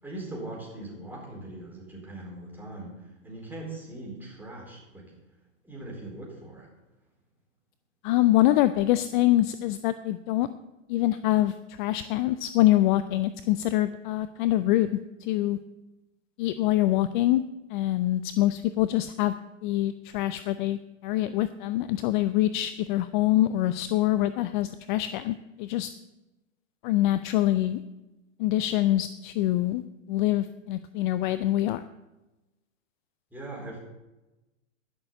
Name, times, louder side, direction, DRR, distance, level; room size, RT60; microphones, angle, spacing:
voice 1, 0.0-5.1 5.6-6.7 33.3-33.8, right 2 dB, 5° right, -3 dB, 4.3 m, -40 dB
voice 2, 8.0-10.5 10.9-15.6 16.4-17.4 17.7-19.3 19.6-25.9 26.8-27.8 28.4-31.8, left 14 dB, 40° left, 13 dB, 0.5 m, -25 dB
11.5 x 6.5 x 7.3 m, 1.0 s
hypercardioid pair, 120°, 38 cm